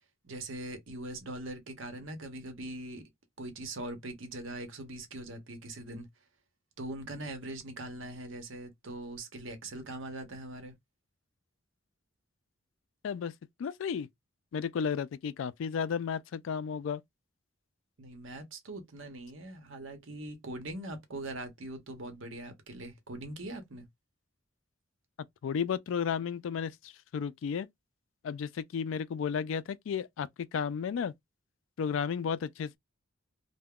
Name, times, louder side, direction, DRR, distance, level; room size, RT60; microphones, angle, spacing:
voice 1, 0.2-3.0 3.4-6.1 6.8-10.7 18.0-23.9, right 1 dB, 75° right, 0.9 m, -41 dB
voice 2, 13.6-14.1 14.5-17.0 25.4-27.7 28.2-31.1 31.8-32.8, left 7 dB, 75° left, 0.3 m, -33 dB
2.3 x 2.1 x 3.5 m
head